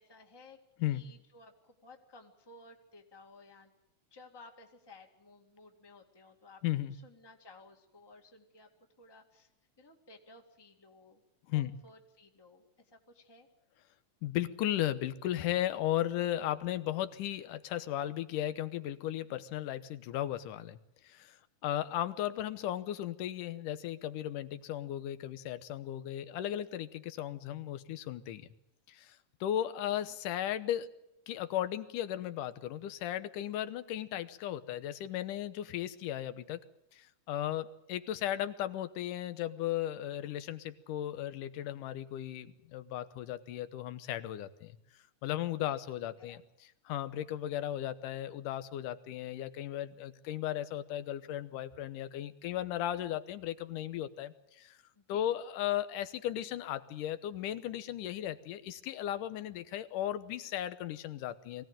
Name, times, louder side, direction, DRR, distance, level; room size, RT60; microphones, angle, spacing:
voice 1, 0.0-3.7 4.1-6.6 6.9-8.7 9.0-9.5 9.8-11.2 11.5-13.5 21.9-22.0 29.8-30.1 45.6-45.8 46.2-46.4 54.9-55.3, left 2 dB, 10° left, 3 dB, 1.6 m, -57 dB
voice 2, 6.6-7.0 11.5-11.8 14.2-20.8 21.0-21.4 21.6-28.5 28.9-30.9 31.3-36.6 36.9-44.8 45.2-46.4 46.9-54.8 55.1-61.6, left 12 dB, 80° left, 13 dB, 2.5 m, -36 dB
23.0 x 17.0 x 9.0 m, 0.84 s
omnidirectional pair, 3.7 m